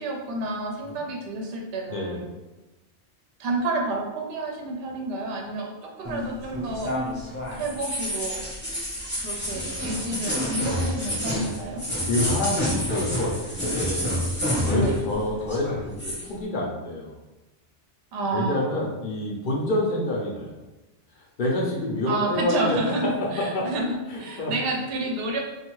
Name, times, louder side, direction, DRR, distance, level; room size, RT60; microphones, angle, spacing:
voice 1, 0.0-2.2 3.4-6.9 7.6-8.4 9.2-11.8 14.7-15.0 18.1-18.7 22.1-25.4, right 2 dB, 65° right, 0 dB, 0.7 m, -29 dB
voice 2, 1.9-2.3 12.1-14.1 14.6-17.2 18.3-20.6 21.1-23.7 24.1-24.5 25.0-25.1, left 1 dB, 55° left, -3 dB, 0.6 m, -28 dB
sound 1, 6.0-15.1 15.4-16.3, equal, 10° left, 0.6 m, -28 dB
2.5 x 2.3 x 3.0 m, 1.1 s
omnidirectional pair, 1.2 m